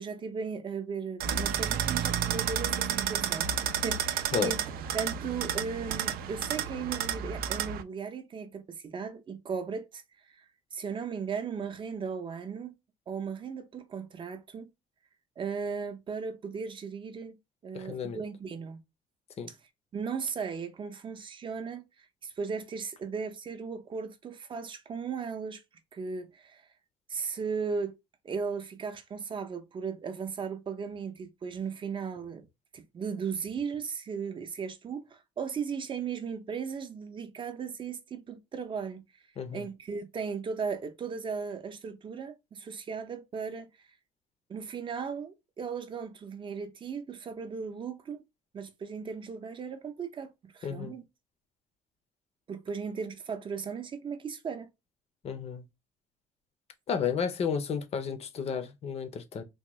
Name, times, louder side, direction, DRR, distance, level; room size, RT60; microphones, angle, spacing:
voice 1, 0.0-10.0 10.4-10.5 10.7-12.7 13.1-14.7 15.4-17.4 17.6-18.8 19.5-19.6 19.9-21.8 22.2-25.6 25.9-26.6 27.1-27.9 28.2-32.5 32.7-39.0 39.5-43.7 44.5-48.2 48.5-51.0 52.5-54.7, right 6 dB, 35° right, 0.5 m, -36 dB
sound 1, 1.2-7.8, right 9 dB, 85° right, 0.4 m, -31 dB
voice 2, 17.7-18.2 19.4-19.5 39.4-39.6 50.6-50.9 55.2-55.6 56.9-59.4, left 6 dB, 45° left, 0.6 m, -32 dB
3.5 x 2.2 x 3.0 m
cardioid pair, 155°, 15 cm